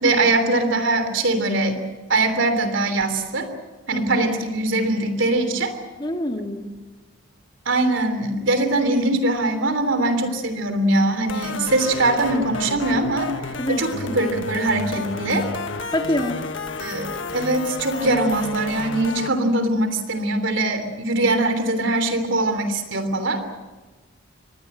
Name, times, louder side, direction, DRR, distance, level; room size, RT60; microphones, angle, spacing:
voice 1, 0.0-1.8 2.1-3.5 3.9-5.7 7.6-13.3 13.7-15.5 16.8-23.4, right 2 dB, 75° right, 9 dB, 3.2 m, -22 dB
voice 2, 6.0-6.7 13.6-13.8 15.9-16.4, left 1 dB, 25° left, 4 dB, 2.0 m, -25 dB
sound 1, 11.3-19.3, left 3 dB, 70° left, 1.5 m, -31 dB
25.0 x 19.5 x 7.9 m, 1.3 s
head